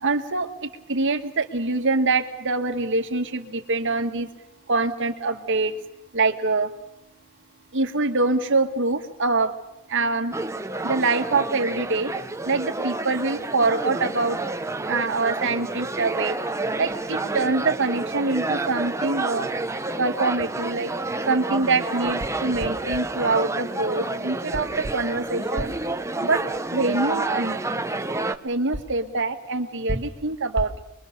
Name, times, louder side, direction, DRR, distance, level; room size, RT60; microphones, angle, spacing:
voice 1, 0.0-4.3 4.7-5.7 6.1-6.7 7.7-9.5 9.9-10.3 10.8-12.1 12.4-14.4 14.9-16.4 16.8-19.5 20.0-20.9 21.3-25.7 26.2-26.4 26.7-27.6 28.4-30.8, right 3 dB, 60° right, 6 dB, 1.7 m, -24 dB
sound 1, 10.3-28.4, right 2 dB, 15° right, 0.8 m, -29 dB
24.5 x 22.0 x 6.7 m, 0.89 s
head